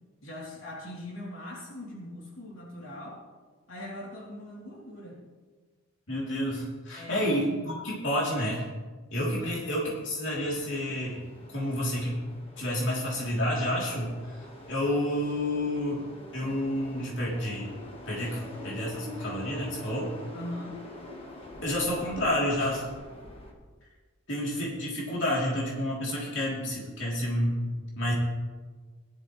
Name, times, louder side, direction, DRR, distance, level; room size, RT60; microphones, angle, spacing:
voice 1, 0.2-3.2 3.7-5.2 6.9-7.7 9.4-9.5 20.3-20.8, left 1 dB, 75° left, -4 dB, 3.1 m, -41 dB
voice 2, 6.1-8.6 9.1-11.2 11.5-12.2 12.6-16.1 16.3-17.7 18.1-20.1 21.6-22.8 24.3-27.7 28.0-28.1, left 1 dB, 60° left, -4 dB, 3.2 m, -29 dB
sound 1, 9.7-23.5, left 1 dB, 30° left, 1.5 m, -45 dB
17.0 x 12.0 x 3.2 m, 1.4 s
head